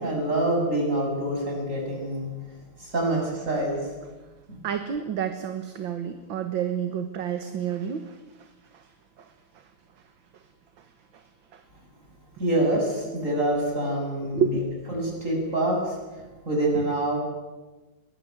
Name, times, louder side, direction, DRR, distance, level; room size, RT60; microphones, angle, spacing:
voice 1, 0.0-2.3 2.8-3.9 4.5-4.6 12.4-14.5 14.9-17.2, right 1 dB, 35° right, 0 dB, 7.5 m, -26 dB
voice 2, 4.6-8.9 9.2-9.3 11.1-11.2 11.5-11.6 14.3-14.6, right 8 dB, 65° right, 8 dB, 2.0 m, -30 dB
22.0 x 19.5 x 9.2 m, 1.2 s
omnidirectional pair, 2.3 m